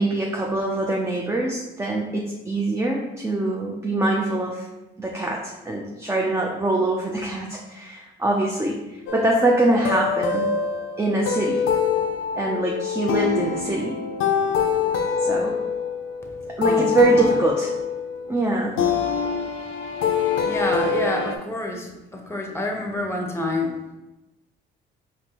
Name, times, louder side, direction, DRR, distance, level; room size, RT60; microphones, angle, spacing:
voice 1, 0.0-4.7 5.0-10.5 11.0-11.6 12.4-14.0 15.2-15.6 16.5-17.7 18.3-18.8, right 2 dB, 15° right, -1 dB, 0.5 m, -23 dB
sound 1, 9.1-21.3, left 6 dB, 90° left, 0.4 m, -25 dB
voice 2, 16.6-17.3 20.5-23.7, left 1 dB, 10° left, 2 dB, 0.8 m, -28 dB
4.2 x 2.9 x 2.9 m, 0.99 s
cardioid pair, 90°, 20 cm